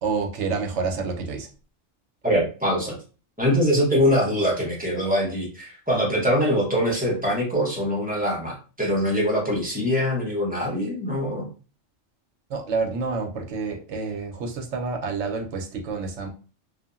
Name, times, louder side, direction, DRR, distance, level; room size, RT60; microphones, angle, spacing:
voice 1, 0.0-1.5 12.5-16.3, right 4 dB, 70° right, 3 dB, 0.9 m, -28 dB
voice 2, 2.2-2.9 3.4-11.5, equal, 10° right, -4 dB, 0.7 m, -23 dB
2.7 x 2.4 x 2.4 m, 0.36 s
omnidirectional pair, 1.3 m